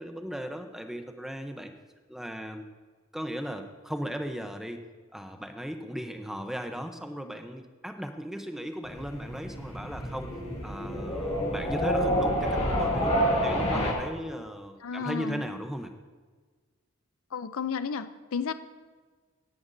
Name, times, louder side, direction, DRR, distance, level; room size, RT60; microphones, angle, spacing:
voice 1, 0.0-1.7 2.1-2.7 3.1-4.8 5.1-10.3 10.6-15.9, equal, ahead, 6 dB, 0.7 m, -37 dB
sound 1, 8.8-13.9, equal, 30° left, 1.9 m, -28 dB
voice 2, 14.8-15.4 17.3-18.5, left 6 dB, 70° left, 12 dB, 0.5 m, -32 dB
18.0 x 10.5 x 2.6 m, 1.4 s
head